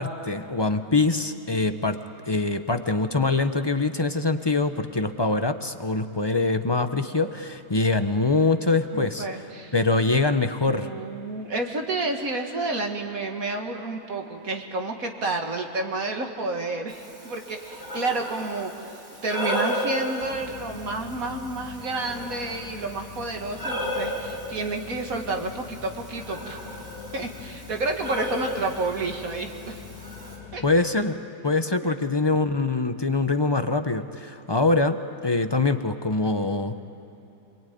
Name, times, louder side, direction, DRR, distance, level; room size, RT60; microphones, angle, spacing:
voice 1, 0.0-2.0 2.3-9.3 9.7-10.9 30.6-31.2 31.4-36.8, left 3 dB, 25° left, 8 dB, 0.6 m, -24 dB
voice 2, 8.9-9.7 10.7-18.9 19.2-26.8 27.1-29.8 30.5-30.8 31.8-32.0, right 3 dB, 60° right, 3 dB, 2.3 m, -30 dB
Breathing, 16.9-30.4, equal, 40° right, 6.0 m, -35 dB
sound 1, 20.2-30.8, left 7 dB, 85° left, 2.3 m, -44 dB
28.0 x 21.5 x 9.3 m, 3.0 s
omnidirectional pair, 1.7 m